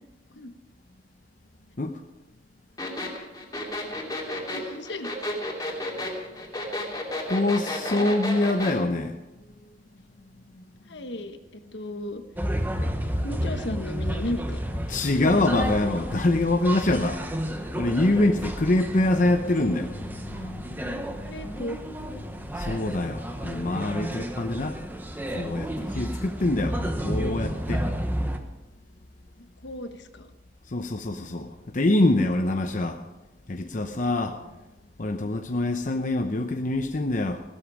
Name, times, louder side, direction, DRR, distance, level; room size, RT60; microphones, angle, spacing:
sound 1, 2.8-8.8, left 1 dB, 20° left, 2.9 m, -32 dB
voice 1, 4.5-5.1 10.9-12.2 13.2-14.6 21.2-21.9 29.6-30.3, left 1 dB, 65° left, 7 dB, 1.3 m, -35 dB
voice 2, 7.3-9.1 14.9-20.6 22.5-24.8 25.2-27.8 30.7-33.0 33.5-34.4 35.0-37.4, left 2 dB, 45° left, 5 dB, 0.8 m, -25 dB
sound 2, 12.4-28.4, equal, 10° right, 1.1 m, -31 dB
17.0 x 12.5 x 5.0 m, 1.0 s
head